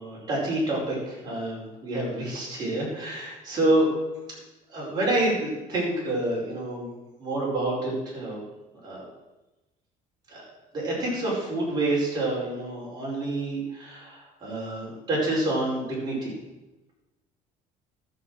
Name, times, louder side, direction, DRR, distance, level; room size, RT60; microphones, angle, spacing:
voice 1, 0.0-3.9 4.7-6.9 7.2-8.4 8.8-9.0 10.3-10.4 10.7-16.3, right 2 dB, 25° right, -5 dB, 4.8 m, -28 dB
12.5 x 7.0 x 6.3 m, 1.0 s
cardioid pair, 165°, 15 cm